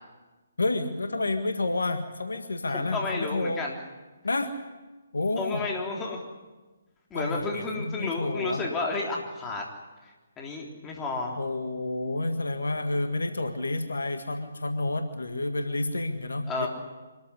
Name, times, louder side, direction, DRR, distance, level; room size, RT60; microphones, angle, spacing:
voice 1, 0.6-3.7 4.2-4.5 5.1-5.6 7.1-8.6 11.4-16.7, left 2 dB, 70° left, 7 dB, 1.9 m, -29 dB
voice 2, 2.7-3.8 5.4-6.2 7.1-9.6 10.4-11.4 16.5-16.7, left 3 dB, 15° left, -1 dB, 3.6 m, -31 dB
25.0 x 14.0 x 10.0 m, 1.2 s
figure-of-eight pair, 140°, 0 cm